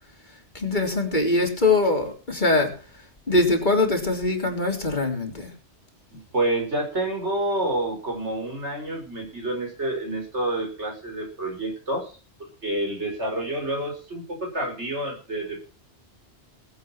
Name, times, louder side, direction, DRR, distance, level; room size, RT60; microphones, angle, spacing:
voice 1, 0.5-2.7 3.3-5.5, left 2 dB, 45° left, 2 dB, 3.6 m, -22 dB
voice 2, 6.1-12.1 12.6-15.6, right 1 dB, 85° right, 1 dB, 6.0 m, -28 dB
20.0 x 8.3 x 5.9 m, 0.37 s
omnidirectional pair, 1.1 m